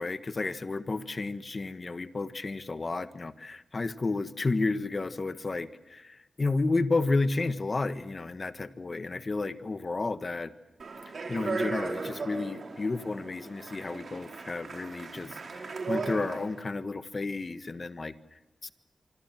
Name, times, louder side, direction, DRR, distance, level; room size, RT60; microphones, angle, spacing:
voice 1, 0.0-10.5 11.3-18.7, left 3 dB, 45° left, 10 dB, 1.5 m, -32 dB
Speech, 10.8-16.6, right 4 dB, 70° right, 4.5 m, -36 dB
26.0 x 25.5 x 7.7 m, 1.1 s
wide cardioid pair, 75°, 0 cm